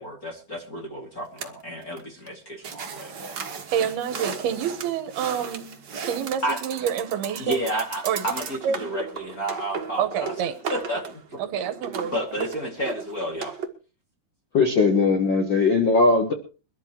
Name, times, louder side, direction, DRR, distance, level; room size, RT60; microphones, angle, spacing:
voice 1, 0.0-3.1 6.4-6.6 7.4-10.3 10.7-11.4 12.0-13.5, right 1 dB, 30° left, 1.9 m, -31 dB
sound 1, 1.4-2.0 2.3-2.4 2.6-13.7, right 6 dB, 50° right, 1.2 m, -36 dB
voice 2, 3.7-5.7 6.0-7.6 8.0-8.3 8.6-8.9 10.0-10.6 11.4-12.1, right 8 dB, 80° right, 3.1 m, -27 dB
voice 3, 14.5-16.3, left 3 dB, 85° left, 1.0 m, -19 dB
23.0 x 13.5 x 3.0 m
omnidirectional pair, 4.5 m